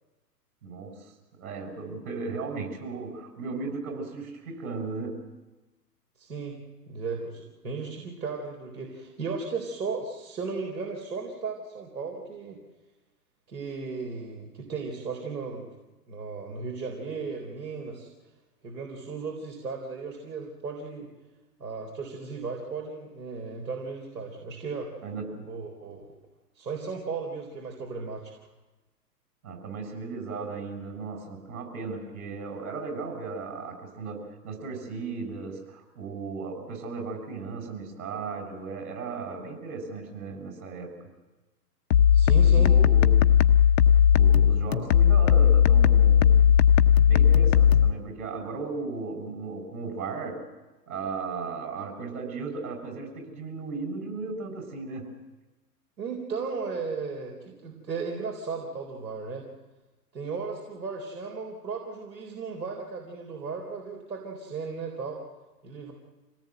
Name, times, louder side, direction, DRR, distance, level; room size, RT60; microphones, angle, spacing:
voice 1, 0.6-5.3 25.0-25.5 29.4-41.0 42.4-43.3 44.1-46.6 47.1-50.5 50.9-55.1, right 4 dB, 60° right, 4 dB, 7.1 m, -36 dB
voice 2, 6.2-6.6 6.9-12.6 13.5-15.7 16.1-18.1 18.6-21.1 21.6-24.9 25.5-26.1 26.6-28.3 42.1-42.7 56.0-59.5 60.1-65.2 65.6-65.9, right 4 dB, 80° right, 0 dB, 4.1 m, -35 dB
sound 1, 41.9-47.9, left 8 dB, 50° left, 1.0 m, -18 dB
26.0 x 18.0 x 7.9 m, 1.1 s
figure-of-eight pair, 115°, 50 cm